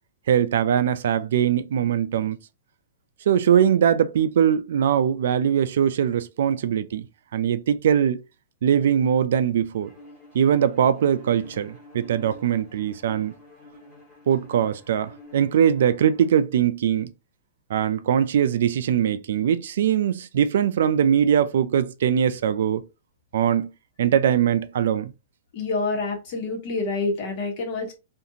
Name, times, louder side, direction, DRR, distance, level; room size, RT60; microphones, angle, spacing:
voice 1, 0.3-2.4 3.3-7.0 7.3-8.2 8.6-9.9 10.3-13.3 14.3-17.1 17.7-22.8 23.3-23.7 24.0-25.1, right 9 dB, 70° right, 0.3 m, -21 dB
Bowed string instrument, 9.8-16.4, left 2 dB, 15° left, 1.4 m, -48 dB
voice 2, 25.5-27.9, left 3 dB, 45° left, 1.2 m, -27 dB
2.5 x 2.5 x 2.7 m
hypercardioid pair, 150°, 0 cm